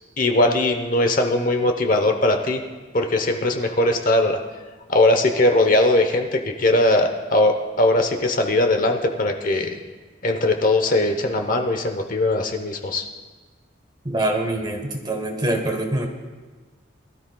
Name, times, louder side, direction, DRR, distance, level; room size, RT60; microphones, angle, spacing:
voice 1, 0.2-2.6 2.9-4.4 4.9-9.7 10.2-13.1, left 2 dB, 45° left, 5 dB, 0.9 m, -20 dB
voice 2, 14.0-16.1, right 1 dB, 25° right, 3 dB, 1.3 m, -24 dB
22.5 x 13.0 x 2.3 m, 1.3 s
head